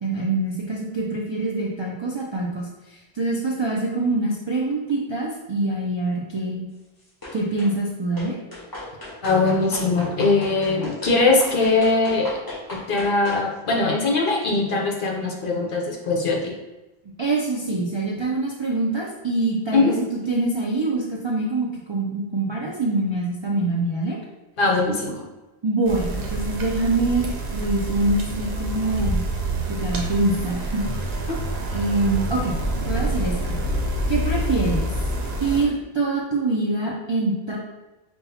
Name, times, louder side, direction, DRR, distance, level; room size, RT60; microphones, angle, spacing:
voice 1, 0.0-6.7 7.3-8.4 17.2-24.2 25.6-29.2 29.8-31.2 31.7-32.6 32.9-33.6 34.1-34.9 35.4-37.6, right 2 dB, 45° right, -4 dB, 0.3 m, -25 dB
sound 1, 7.2-7.7 8.2-13.5, left 1 dB, 20° left, 1.3 m, -36 dB
voice 2, 9.2-12.3 12.7-16.5 19.7-19.9 24.6-25.2, left 3 dB, 60° left, -1 dB, 0.9 m, -21 dB
sound 2, 25.8-35.6, right 1 dB, 75° right, 0.9 m, -27 dB
5.5 x 2.3 x 2.7 m, 1.1 s
omnidirectional pair, 1.1 m